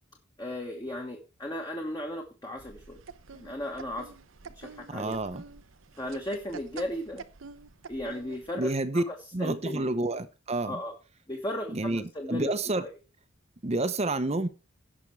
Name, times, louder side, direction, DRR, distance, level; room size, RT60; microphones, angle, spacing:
voice 1, 0.4-3.0 3.3-4.1 4.5-5.2 6.0-7.2 7.9-9.9 10.7-10.9 11.3-12.9, left 1 dB, 20° left, 1.4 m, -36 dB
sound 1, 2.6-8.5, right 5 dB, 80° right, 0.8 m, -47 dB
voice 2, 4.9-5.4 8.6-9.0 9.3-10.8 11.7-12.8 13.6-14.5, right 2 dB, 30° right, 0.8 m, -29 dB
17.0 x 6.0 x 3.2 m
head